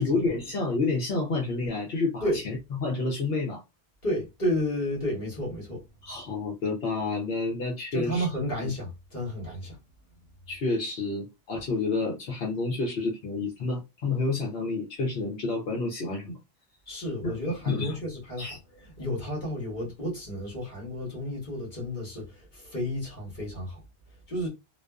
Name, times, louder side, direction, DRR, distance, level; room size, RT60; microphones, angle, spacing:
voice 1, 0.0-3.6 6.0-8.3 8.6-8.7 10.5-16.4 17.2-17.4 17.7-18.0 18.4-18.6, left 3 dB, 70° left, 0.9 m, -29 dB
voice 2, 4.0-5.8 7.9-9.8 16.9-23.8 24.3-24.5, equal, 50° left, 1.1 m, -32 dB
2.4 x 2.2 x 2.2 m
omnidirectional pair, 1.1 m